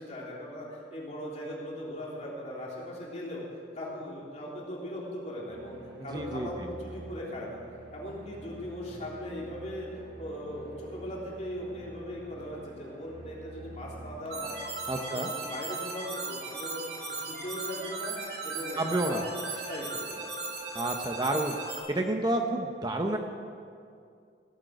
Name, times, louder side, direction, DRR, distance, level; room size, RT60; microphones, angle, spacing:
voice 1, 0.0-3.4 3.7-5.8 6.0-7.6 7.9-9.9 10.1-14.6 14.9-16.8 17.1-18.2 18.4-19.2 19.5-20.3, equal, 40° left, -4 dB, 3.4 m, -39 dB
sound 1, 5.5-15.0, right 1 dB, 85° right, 4.5 m, -48 dB
voice 2, 6.1-6.7 14.9-15.3 18.8-19.2 20.7-21.5 21.9-23.2, right 1 dB, 25° right, 4 dB, 0.8 m, -30 dB
sound 2, 14.3-21.8, right 3 dB, 60° right, 2.8 m, -37 dB
17.0 x 8.2 x 8.1 m, 2.3 s
head